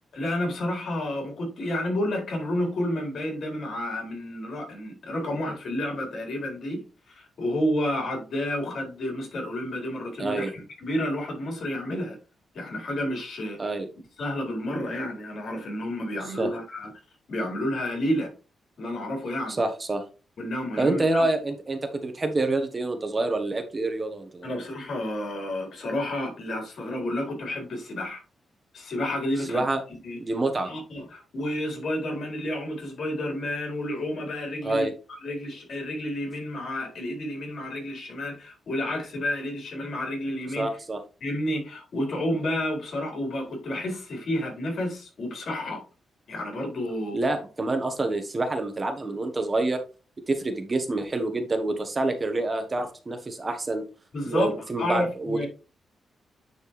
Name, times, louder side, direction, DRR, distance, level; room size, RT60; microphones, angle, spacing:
voice 1, 0.1-12.2 12.5-13.7 14.2-16.9 17.3-18.3 18.8-19.5 20.4-21.3 24.4-28.2 28.7-29.6 30.0-30.2 30.6-34.9 35.2-40.7 41.2-45.8 46.3-47.2 54.1-55.5, left 1 dB, 65° left, 4.5 m, -30 dB
voice 2, 10.2-10.5 13.6-13.9 16.4-16.5 19.6-20.0 20.8-24.6 29.5-29.8 30.2-30.7 34.6-34.9 40.6-41.0 47.1-49.8 50.3-53.8 54.3-55.5, right 2 dB, 25° right, 1.2 m, -27 dB
10.0 x 4.5 x 3.2 m
cardioid pair, 110°, 0 cm